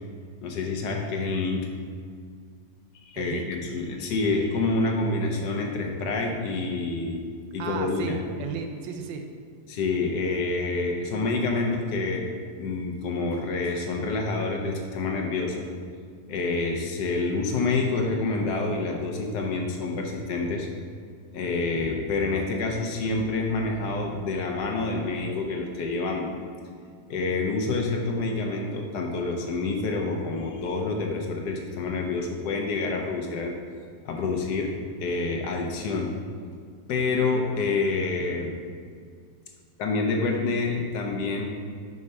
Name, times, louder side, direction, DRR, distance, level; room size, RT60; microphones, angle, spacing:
voice 1, 0.4-1.7 3.1-7.2 7.5-8.2 9.7-12.2 12.5-15.7 16.3-20.7 21.3-26.3 27.1-33.5 34.0-34.7 35.0-36.1 36.9-38.6 39.8-41.5, left 3 dB, 65° left, 1 dB, 1.3 m, -27 dB
voice 2, 3.1-3.5 7.6-9.2, right 5 dB, 80° right, 5 dB, 1.3 m, -34 dB
5.3 x 4.7 x 5.4 m, 2.1 s
omnidirectional pair, 2.0 m